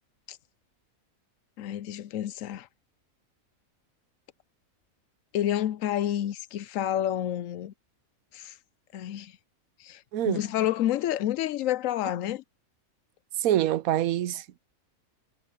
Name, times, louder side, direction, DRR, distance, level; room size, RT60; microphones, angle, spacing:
voice 1, 1.6-2.7 5.3-7.7 8.3-8.6 8.9-9.4 9.8-12.4, left 12 dB, 75° left, 0.9 m, -29 dB
voice 2, 10.1-10.4 13.4-14.6, right 12 dB, 90° right, 1.1 m, -26 dB
omnidirectional pair, 1.4 m